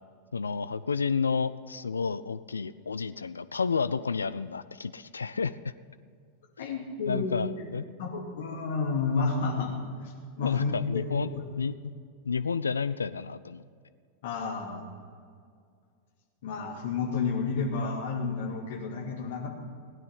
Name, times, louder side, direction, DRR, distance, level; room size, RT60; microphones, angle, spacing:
voice 1, 0.3-5.5 6.6-6.7 7.0-7.9 10.4-11.3 11.6-11.7 12.3-13.6, left 5 dB, 75° left, 14 dB, 0.3 m, -30 dB
voice 2, 6.6-7.7 8.0-9.7 10.0-11.4 14.2-14.9 16.4-19.5, left 4 dB, 55° left, 1 dB, 2.4 m, -31 dB
16.5 x 9.8 x 5.8 m, 2.1 s
figure-of-eight pair, 90°, 0 cm